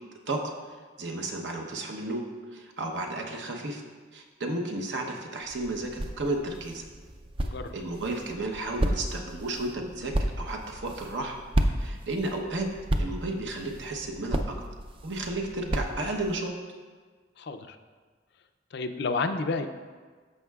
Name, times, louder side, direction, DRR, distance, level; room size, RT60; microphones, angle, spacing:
voice 1, 0.7-2.2 2.5-3.8 4.1-6.8 7.4-11.4 11.8-12.7 13.0-14.6 15.0-16.6, right 2 dB, 70° right, 2 dB, 0.9 m, -33 dB
sound 1, 5.4-16.4, right 1 dB, 30° right, 0.5 m, -33 dB
voice 2, 7.4-7.7 17.4-17.8 18.7-19.7, left 3 dB, 65° left, 8 dB, 0.5 m, -30 dB
13.5 x 5.5 x 2.4 m, 1.5 s
head